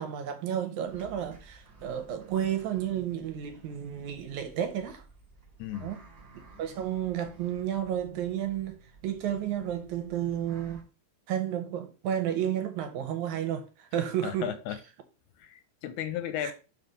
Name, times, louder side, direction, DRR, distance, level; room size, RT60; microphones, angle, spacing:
voice 1, 0.0-5.0 5.8-6.0 6.6-8.8 9.0-10.8 11.3-14.5 16.4-16.5, right 10 dB, 75° right, 1.9 m, -32 dB
sound 1, 0.8-10.8, right 3 dB, 25° right, 1.2 m, -54 dB
voice 2, 5.6-5.9 14.2-14.8 15.4-16.5, left 10 dB, 80° left, 2.0 m, -34 dB
6.0 x 4.0 x 5.2 m
omnidirectional pair, 3.7 m